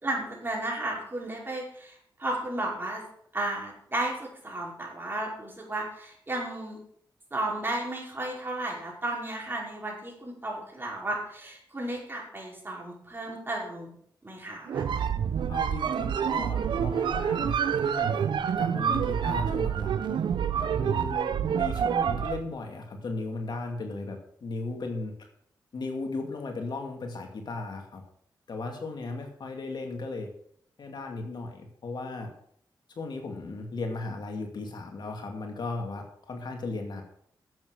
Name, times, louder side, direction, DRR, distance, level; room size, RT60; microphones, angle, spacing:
voice 1, 0.0-3.0 3.3-6.8 7.3-13.9 14.2-14.9, right 1 dB, 25° right, -2 dB, 5.4 m, -33 dB
sound 1, 14.7-22.5, right 8 dB, 80° right, 0.7 m, -27 dB
voice 2, 15.5-18.3 18.6-20.2 20.7-25.1 25.7-28.0 28.5-30.3 30.8-32.3 33.0-37.0, left 3 dB, 65° left, 3 dB, 2.4 m, -36 dB
10.5 x 8.2 x 6.5 m, 0.66 s
cardioid pair, 70°, 8 cm